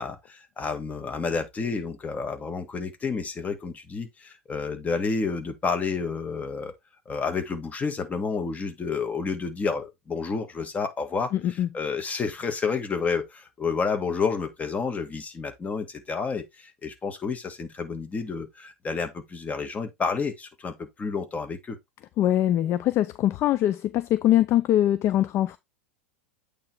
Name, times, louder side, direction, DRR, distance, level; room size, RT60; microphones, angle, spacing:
voice 1, 0.0-6.7 7.1-21.8, left 5 dB, 20° left, 1.8 m, -30 dB
voice 2, 11.3-11.7 22.2-25.6, left 12 dB, 40° left, 0.5 m, -22 dB
8.7 x 3.4 x 4.4 m
hypercardioid pair, 90°, 7 cm